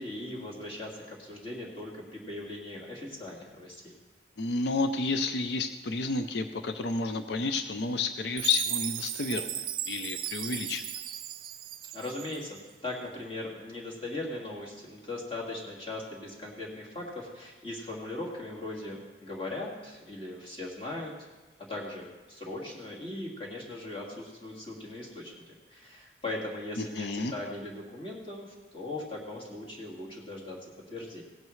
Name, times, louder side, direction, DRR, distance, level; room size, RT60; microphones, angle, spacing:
voice 1, 0.0-3.9 11.9-21.1 21.7-30.6 30.9-31.2, left 2 dB, 30° left, -3 dB, 2.1 m, -39 dB
voice 2, 4.4-10.9 26.8-27.3, left 3 dB, 70° left, 9 dB, 0.5 m, -31 dB
Chime, 8.4-12.6, right 12 dB, 50° right, 0.5 m, -36 dB
17.0 x 10.5 x 3.2 m, 1.2 s
head